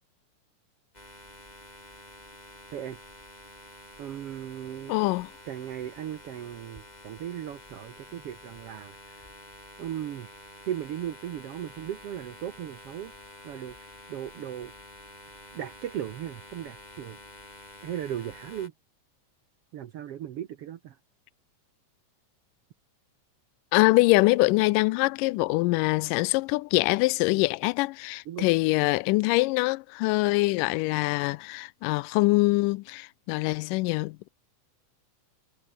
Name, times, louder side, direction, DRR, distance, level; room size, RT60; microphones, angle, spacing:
sound 1, 0.9-18.7, left 1 dB, 10° left, 4.3 m, -49 dB
voice 1, 4.0-5.0 5.5-9.3 9.8-10.3 10.7-13.1 13.4-13.8 14.1-14.7 15.5-17.2 17.8-18.7 19.7-21.0 28.3-28.5, right 11 dB, 65° right, 1.5 m, -37 dB
voice 2, 4.9-5.3 23.7-34.3, left 22 dB, 85° left, 2.2 m, -24 dB
omnidirectional pair, 3.7 m